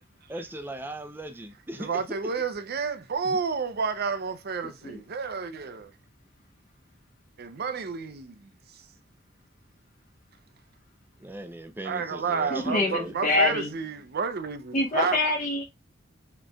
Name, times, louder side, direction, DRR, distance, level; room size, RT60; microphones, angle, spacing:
voice 1, 0.3-2.2 3.2-3.4 11.2-13.1, right 1 dB, 10° right, 0.6 m, -39 dB
voice 2, 1.8-5.9 7.4-8.5 11.8-15.2, right 5 dB, 55° right, 0.6 m, -30 dB
voice 3, 12.5-13.7 14.7-15.6, left 2 dB, 45° left, 1.1 m, -25 dB
5.0 x 3.1 x 2.3 m
head